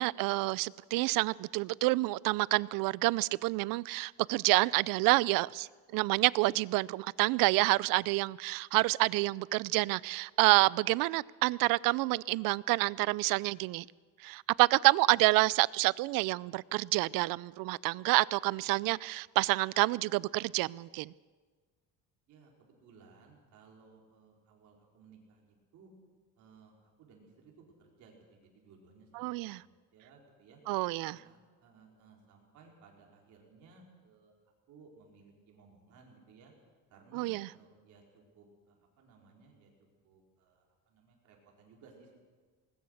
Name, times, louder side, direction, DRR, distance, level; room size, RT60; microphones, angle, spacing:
voice 1, 0.0-5.7 5.9-13.9 14.2-21.1 29.2-29.6 30.7-31.2 37.1-37.5, right 21 dB, 75° right, 23 dB, 0.5 m, -28 dB
voice 2, 22.3-25.9 26.4-26.7 27.0-29.6 29.9-30.6 31.1-34.3 34.7-36.5 36.9-39.7 40.0-42.2, right 4 dB, 55° right, 0 dB, 4.6 m, -60 dB
20.0 x 19.5 x 6.5 m, 1.4 s
cardioid pair, 175°, 34 cm